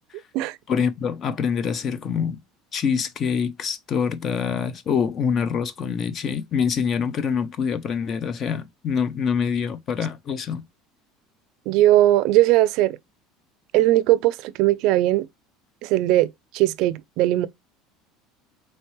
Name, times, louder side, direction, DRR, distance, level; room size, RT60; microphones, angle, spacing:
voice 1, 0.7-2.4 2.7-10.6, left 6 dB, 40° left, 0.5 m, -25 dB
voice 2, 11.7-13.0 13.7-15.3 15.8-17.5, right 15 dB, 65° right, 0.4 m, -19 dB
4.3 x 3.2 x 3.1 m
supercardioid pair, 120°, 0 cm